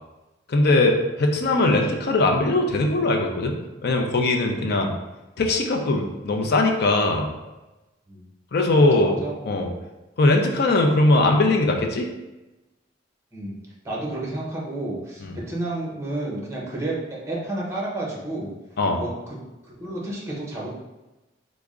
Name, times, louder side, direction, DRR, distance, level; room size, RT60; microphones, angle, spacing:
voice 1, 0.5-3.6 3.8-4.9 5.4-7.3 8.5-9.2 9.5-9.7 10.2-12.1 15.2-15.3 18.8-19.0, left 2 dB, 55° left, 3 dB, 0.5 m, -20 dB
voice 2, 1.6-2.0 4.7-5.0 8.1-8.3 8.8-9.4 13.3-13.6 13.8-17.0 17.3-18.5 19.0-19.4 19.6-20.7, right 2 dB, 15° right, -4 dB, 0.8 m, -31 dB
3.4 x 2.1 x 3.6 m, 1.0 s
head